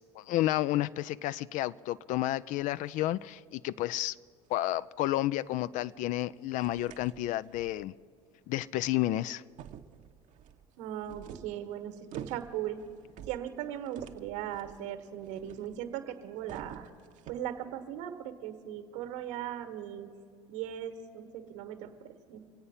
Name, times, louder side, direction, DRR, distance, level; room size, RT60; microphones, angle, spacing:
voice 1, 0.2-4.2 4.5-7.9 8.5-9.4, left 15 dB, 55° left, 17 dB, 0.4 m, -31 dB
sound 1, 2.6-3.4 3.9-4.0 4.4-4.6 5.0-5.1 6.2-6.3 6.6-7.9 8.9-9.0 9.4-16.0 16.2-17.6, right 9 dB, 50° right, 0.9 m, -49 dB
voice 2, 10.8-12.8 13.3-16.9 17.3-20.1 20.5-22.4, right 11 dB, 70° right, 8 dB, 1.4 m, -38 dB
25.0 x 8.7 x 5.5 m, 2.2 s
hypercardioid pair, 70°, 16 cm